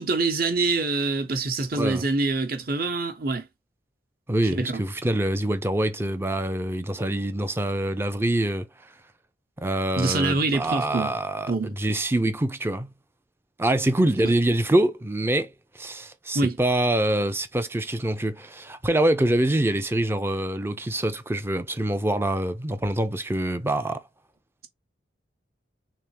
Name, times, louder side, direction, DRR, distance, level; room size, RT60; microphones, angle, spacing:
voice 1, 0.0-3.5 4.4-4.8 9.9-11.1 11.5-11.7 14.2-14.3 16.3-16.6, right 3 dB, 55° right, 1.1 m, -25 dB
voice 2, 1.7-2.0 4.3-8.7 9.6-12.9 13.6-24.0, right 1 dB, 15° right, 0.4 m, -25 dB
3.6 x 3.3 x 2.8 m
head